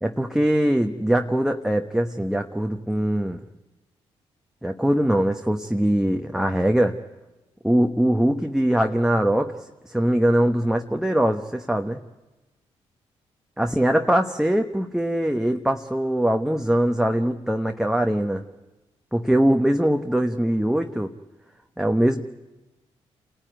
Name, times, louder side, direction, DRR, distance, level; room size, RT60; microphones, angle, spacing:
voice 1, 0.0-3.4 4.6-7.0 7.6-9.5 9.9-12.0 13.6-18.4 19.1-21.1 21.8-22.2, right 1 dB, 5° right, 4 dB, 1.1 m, -22 dB
27.5 x 14.5 x 9.1 m, 1.1 s
supercardioid pair, 45°, 13 cm